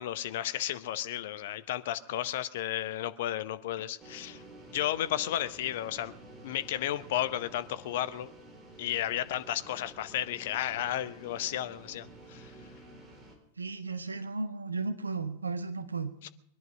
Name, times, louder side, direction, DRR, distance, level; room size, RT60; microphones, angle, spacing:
voice 1, 0.0-4.4 4.7-6.1 6.4-8.3 8.8-12.5 16.2-16.3, left 12 dB, 55° left, 0.8 m, -33 dB
sound 1, 4.0-13.4, right 2 dB, 20° right, 3.8 m, -51 dB
voice 2, 13.6-16.1, right 3 dB, 75° right, 1.0 m, -34 dB
22.0 x 11.0 x 4.9 m
figure-of-eight pair, 90°, 0 cm